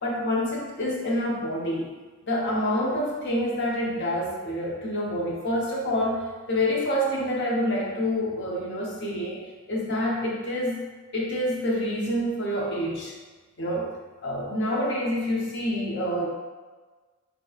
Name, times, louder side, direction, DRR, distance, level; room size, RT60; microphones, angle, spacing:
voice 1, 0.0-1.9 2.3-10.8 11.1-13.1 13.6-13.9 14.2-16.3, left 1 dB, 55° left, -3 dB, 0.7 m, -27 dB
3.9 x 2.9 x 2.3 m, 1.3 s
head